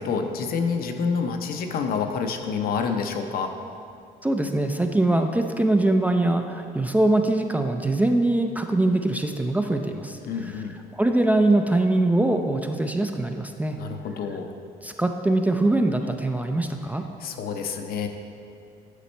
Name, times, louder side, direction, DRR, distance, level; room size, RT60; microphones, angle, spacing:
voice 1, 0.0-3.5 10.3-10.8 13.8-14.5 17.2-18.1, left 5 dB, 65° left, 5 dB, 0.6 m, -28 dB
voice 2, 4.2-10.2 10.9-13.8 14.8-17.0, right 2 dB, 10° right, 4 dB, 0.3 m, -22 dB
8.3 x 4.2 x 4.4 m, 2.6 s
cardioid pair, 110°, 17 cm